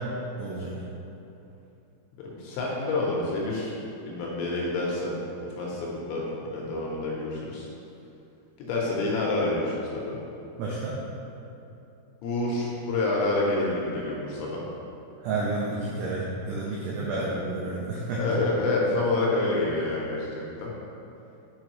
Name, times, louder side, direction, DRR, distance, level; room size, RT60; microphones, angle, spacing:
voice 1, 0.4-0.7 10.6-11.0 15.2-18.2, right 3 dB, 85° right, -6 dB, 2.3 m, -30 dB
voice 2, 2.4-3.7 4.1-5.2 5.6-7.7 8.6-10.2 12.2-14.6 17.1-17.3 18.2-20.7, left 2 dB, 80° left, -4 dB, 3.0 m, -28 dB
7.7 x 4.9 x 3.0 m, 2.8 s
omnidirectional pair, 5.8 m